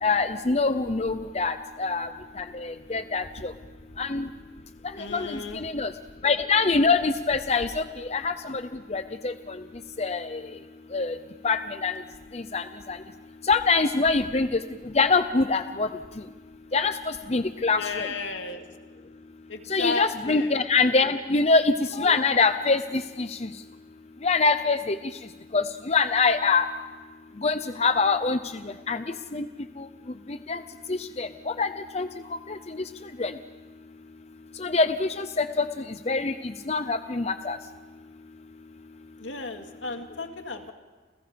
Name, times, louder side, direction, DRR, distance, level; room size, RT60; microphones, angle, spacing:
voice 1, 0.0-2.1 2.4-3.5 4.0-4.3 5.1-5.9 6.2-8.6 8.9-9.6 10.0-10.4 10.9-11.2 11.4-11.9 12.3-13.0 13.4-14.6 14.9-15.9 16.7-18.1 19.7-23.5 24.2-25.0 25.5-26.7 27.4-28.4 28.6-29.5 29.8-29.9 30.5-30.6 30.9-32.8 33.2-33.3 34.6-35.7 36.1-37.6, left 4 dB, 35° left, 10 dB, 0.7 m, -25 dB
voice 2, 5.0-5.7 17.7-18.6 19.5-20.6 39.2-40.7, left 3 dB, 80° left, 5 dB, 2.3 m, -34 dB
30.0 x 29.5 x 5.2 m, 1.3 s
head